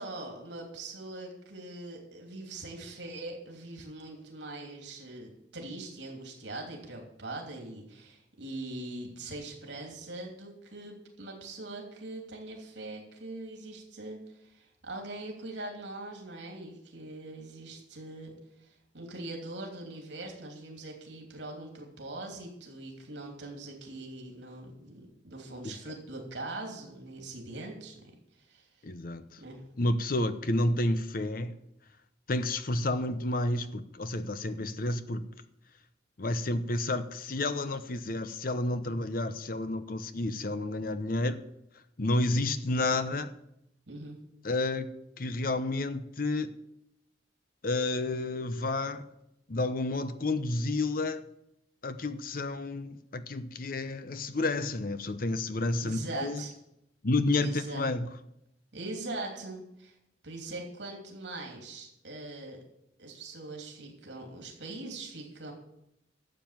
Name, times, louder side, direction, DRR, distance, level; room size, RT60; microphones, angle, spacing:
voice 1, 0.0-28.7 29.4-29.6 43.9-44.2 55.8-56.5 57.4-57.9 58.7-60.0 60.2-62.6 63.0-65.5, right 2 dB, 75° right, 3.0 m, -42 dB
voice 2, 28.8-29.4 29.8-31.5 32.3-35.2 36.2-41.4 42.0-43.3 44.4-44.9 45.2-46.5 47.6-49.0 49.5-51.2 51.8-56.4 57.0-58.1, left 2 dB, 50° left, 0.8 m, -30 dB
12.0 x 7.6 x 7.5 m
head